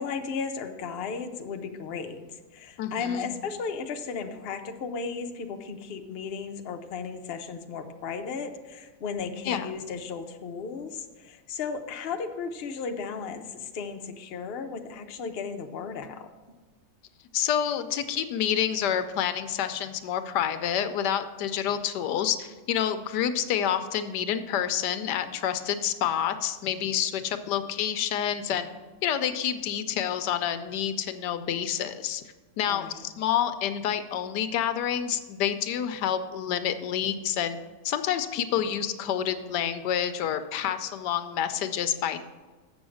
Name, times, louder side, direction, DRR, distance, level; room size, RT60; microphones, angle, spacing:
voice 1, 0.0-2.3 2.5-16.3 32.7-33.0, left 5 dB, 55° left, 5 dB, 0.7 m, -35 dB
voice 2, 2.8-3.3 9.4-9.7 17.3-28.7 29.0-32.2 32.6-37.6 37.8-42.2, left 9 dB, 90° left, 10 dB, 1.2 m, -28 dB
7.7 x 6.2 x 6.3 m, 1.3 s
omnidirectional pair, 1.8 m